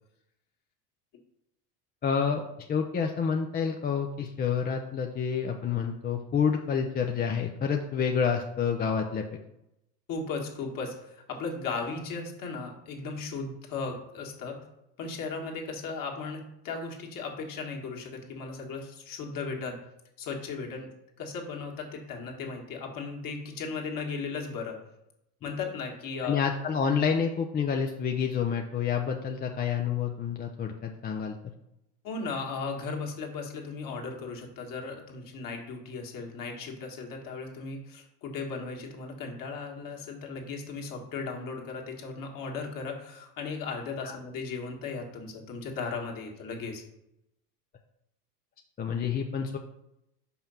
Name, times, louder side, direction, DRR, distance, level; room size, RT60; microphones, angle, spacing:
voice 1, 2.0-9.2 26.2-31.4 44.0-44.1 48.8-49.6, left 6 dB, 20° left, 3 dB, 0.5 m, -28 dB
voice 2, 10.1-14.6 15.0-19.8 20.2-20.9 21.2-24.8 25.4-26.4 32.0-46.8, left 4 dB, 45° left, 1 dB, 1.9 m, -36 dB
5.5 x 4.5 x 5.6 m, 0.83 s
hypercardioid pair, 85°, 47 cm